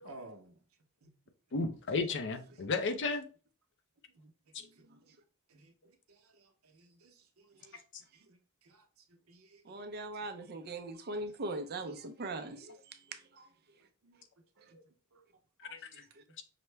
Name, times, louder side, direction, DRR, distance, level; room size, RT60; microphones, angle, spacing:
voice 1, 0.0-0.5 1.0-1.1 4.2-4.3 5.5-5.7 6.7-7.1 7.6-7.7 8.3-8.4 8.6-8.8 9.3-9.6 14.0-14.2 15.1-15.2, right 2 dB, 70° right, 0.8 m, -53 dB
voice 2, 1.5-3.2 4.5-4.7 15.7-15.8, left 4 dB, 55° left, 0.6 m, -33 dB
voice 3, 9.6-13.5 15.6-16.2, right 2 dB, 45° right, 0.5 m, -41 dB
5.8 x 2.1 x 3.3 m
head